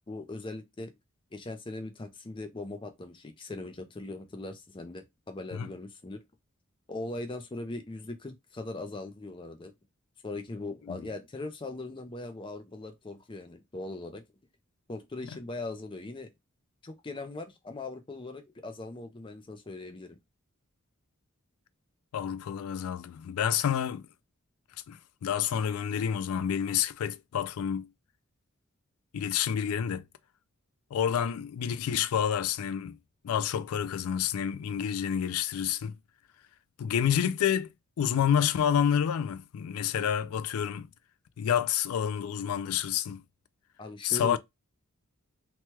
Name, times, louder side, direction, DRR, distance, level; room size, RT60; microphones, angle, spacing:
voice 1, 0.1-0.9 1.3-6.2 6.9-9.7 10.2-14.2 14.9-16.3 16.8-20.2 43.8-44.4, left 2 dB, 25° left, 0.5 m, -40 dB
voice 2, 22.1-24.0 24.9-27.9 29.1-30.0 30.9-33.0 33.2-35.9 36.8-37.7 38.0-40.9 41.4-43.2 44.0-44.4, left 8 dB, 85° left, 0.3 m, -29 dB
3.0 x 2.2 x 3.0 m
head